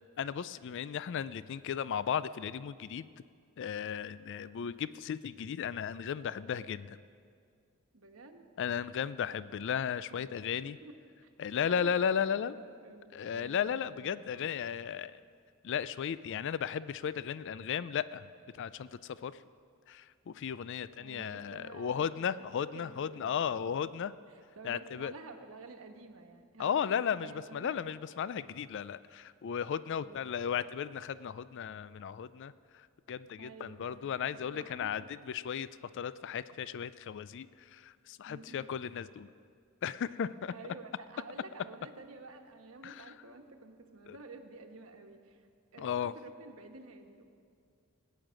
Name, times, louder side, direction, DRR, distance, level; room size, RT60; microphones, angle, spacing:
voice 1, 0.2-3.1 3.6-7.0 8.6-10.8 11.4-12.6 13.1-15.2 15.6-18.3 18.5-19.4 19.9-24.1 24.6-25.1 26.6-32.5 33.1-35.0 35.3-35.7 35.9-37.5 37.7-39.3 39.8-40.5 42.8-42.9 44.1-44.2 45.8-46.1, left 8 dB, 60° left, 16 dB, 0.4 m, -35 dB
voice 2, 4.3-4.8 7.9-8.4 10.1-11.0 11.2-11.3 11.6-12.1 12.4-14.5 21.0-22.3 22.7-23.8 24.3-27.8 29.9-30.4 33.4-34.9 38.2-38.7 40.5-45.5 45.7-47.2, right 3 dB, 75° right, 5 dB, 1.2 m, -51 dB
19.0 x 9.2 x 6.3 m, 2.2 s
head